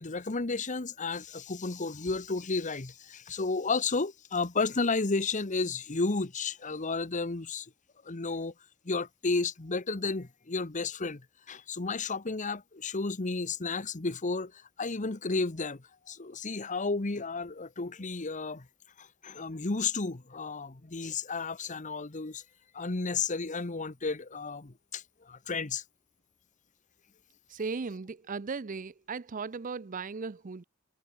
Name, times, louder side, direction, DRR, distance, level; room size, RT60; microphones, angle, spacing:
voice 1, 0.0-7.7 8.0-8.5 8.8-11.2 11.5-14.5 14.8-18.7 19.0-22.4 22.7-25.8, left 3 dB, 35° left, 1.0 m, -32 dB
voice 2, 27.5-30.6, right 4 dB, 40° right, 0.5 m, -37 dB
head